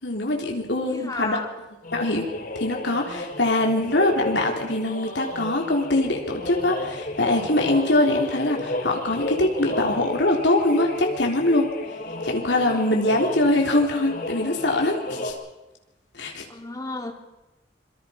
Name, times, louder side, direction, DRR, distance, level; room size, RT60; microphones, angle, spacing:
voice 1, 0.0-1.4 1.9-2.3 2.6-11.7 12.2-15.3 16.1-16.4, left 1 dB, 85° left, 1 dB, 3.7 m, -23 dB
voice 2, 0.8-1.5 12.2-13.1 16.5-17.1, left 2 dB, 20° left, 3 dB, 3.1 m, -34 dB
sound 1, 1.8-15.3, left 1 dB, 50° left, 3.5 m, -33 dB
26.5 x 23.5 x 5.3 m, 1.0 s
head